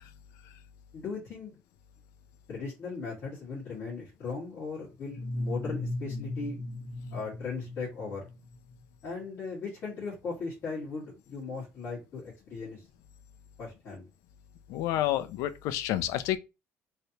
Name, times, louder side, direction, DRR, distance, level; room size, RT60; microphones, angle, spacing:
voice 1, 0.9-1.5 2.5-6.6 7.1-8.2 9.0-12.8 13.6-14.1, left 4 dB, 40° left, 1.5 m, -38 dB
sound 1, 5.1-8.8, left 2 dB, 65° left, 0.8 m, -37 dB
voice 2, 14.7-16.4, left 13 dB, 85° left, 0.4 m, -29 dB
3.2 x 2.8 x 2.8 m
cardioid pair, 170°, 5 cm